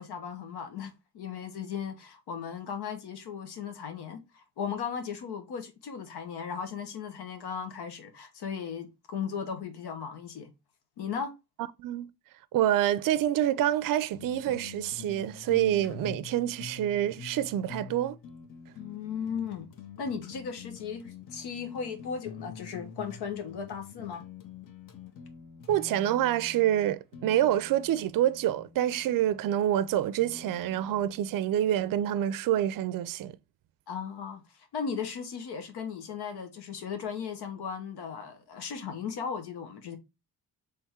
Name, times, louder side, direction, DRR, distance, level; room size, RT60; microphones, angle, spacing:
voice 1, 0.0-10.5 11.0-11.3 18.7-19.7 20.0-24.2 33.9-40.0, left 6 dB, 80° left, 1.1 m, -37 dB
voice 2, 11.8-12.1 12.5-18.2 25.7-33.4, right 12 dB, 55° right, 0.5 m, -27 dB
sound 1, 14.1-31.8, left 6 dB, 55° left, 0.9 m, -47 dB
3.6 x 3.4 x 4.2 m
cardioid pair, 120°, 39 cm